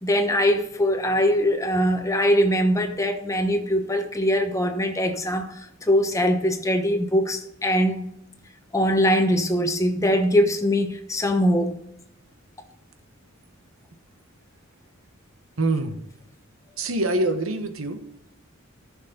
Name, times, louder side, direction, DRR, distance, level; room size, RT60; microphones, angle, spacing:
voice 1, 0.0-8.0 8.7-11.8, equal, 15° left, 1.0 m, -22 dB
voice 2, 15.6-16.0 16.8-18.0, right 2 dB, 90° right, 1.2 m, -24 dB
14.0 x 6.3 x 4.0 m
head